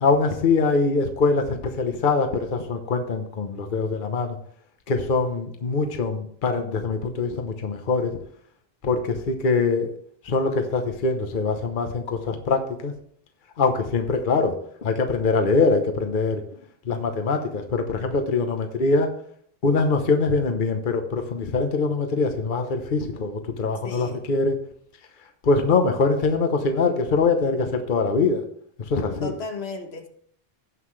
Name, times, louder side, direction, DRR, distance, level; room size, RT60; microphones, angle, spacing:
voice 1, 0.0-4.4 4.9-8.1 8.8-9.9 10.2-12.9 13.6-16.4 16.9-19.1 19.6-24.5 25.4-28.4 28.9-29.3, left 4 dB, 55° left, 6 dB, 1.1 m, -23 dB
voice 2, 23.8-24.2 29.2-30.1, left 3 dB, 80° left, 5 dB, 1.5 m, -34 dB
17.0 x 5.7 x 3.2 m, 0.62 s
omnidirectional pair, 1.0 m